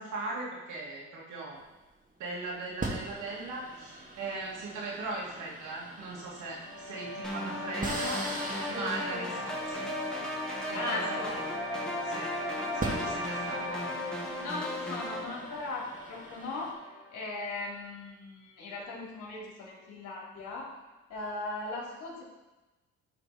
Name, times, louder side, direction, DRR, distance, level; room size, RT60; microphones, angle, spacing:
voice 1, 0.0-1.6 2.2-8.2 8.7-9.9 10.7-11.2 11.8-12.3 12.7-13.9, right 3 dB, 80° right, -4 dB, 2.8 m, -39 dB
sound 1, 1.6-1.9 2.8-11.8 12.6-16.7, right 2 dB, 25° right, 2.0 m, -42 dB
sound 2, 6.2-17.2, left 1 dB, 50° left, 2.9 m, -39 dB
sound 3, 7.2-15.2, equal, 5° left, 1.8 m, -37 dB
voice 2, 10.7-11.6 14.4-16.7 17.1-20.7 21.1-22.2, left 2 dB, 85° left, -4 dB, 3.4 m, -38 dB
12.0 x 4.7 x 4.4 m, 1.1 s
cardioid pair, 90°, 30 cm